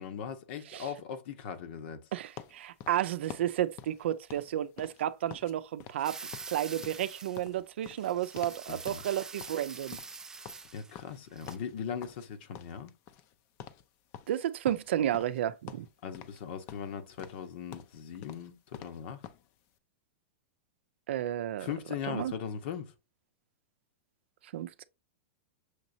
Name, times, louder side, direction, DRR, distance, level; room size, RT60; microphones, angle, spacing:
voice 1, 0.0-2.0 8.7-9.0 10.3-12.9 16.0-19.2 21.6-22.9, left 7 dB, 60° left, 1.1 m, -39 dB
voice 2, 2.1-6.2 6.5-10.0 14.3-15.9 21.1-21.7 22.1-22.3 24.5-24.8, right 11 dB, 75° right, 0.5 m, -32 dB
sound 1, 2.4-5.5 5.8-6.1 6.3-8.6 8.9-9.1 9.4-12.3 12.5-13.3 13.6-13.8 14.1-15.4 15.7-16.4 16.7-19.5, left 10 dB, 40° left, 0.6 m, -48 dB
sound 2, 6.0-7.5 7.8-11.0 11.3-11.6, right 4 dB, 10° right, 0.3 m, -45 dB
6.4 x 3.0 x 2.7 m
hypercardioid pair, 130°, 6 cm